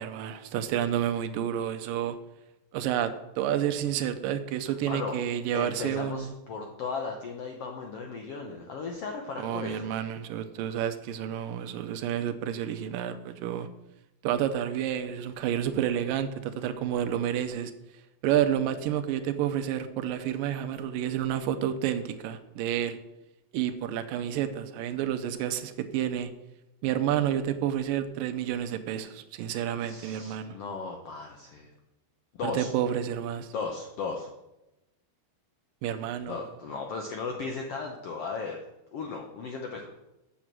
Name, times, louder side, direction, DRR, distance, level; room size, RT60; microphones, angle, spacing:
voice 1, 0.0-2.2 2.7-6.3 9.4-13.7 14.2-17.7 18.2-23.0 23.5-26.3 26.8-30.5 32.4-33.5 35.8-36.4, right 10 dB, 80° right, 9 dB, 2.4 m, -30 dB
voice 2, 4.7-5.2 5.5-9.9 29.8-31.7 32.3-32.7 33.5-34.3 36.3-38.6 38.9-39.9, left 4 dB, 75° left, 2 dB, 1.4 m, -36 dB
7.9 x 7.1 x 7.4 m, 0.94 s
omnidirectional pair, 4.0 m